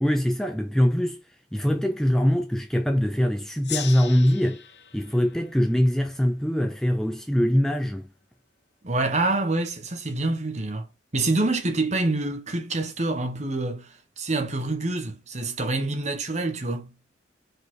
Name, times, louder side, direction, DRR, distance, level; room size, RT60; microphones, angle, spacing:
voice 1, 0.0-1.2 1.5-4.6 4.9-8.1, equal, 5° left, 0.5 m, -23 dB
Gong, 3.6-6.8, left 9 dB, 60° left, 1.0 m, -39 dB
voice 2, 8.8-10.9 11.1-16.9, right 2 dB, 40° right, 1.2 m, -26 dB
4.9 x 4.2 x 4.6 m
head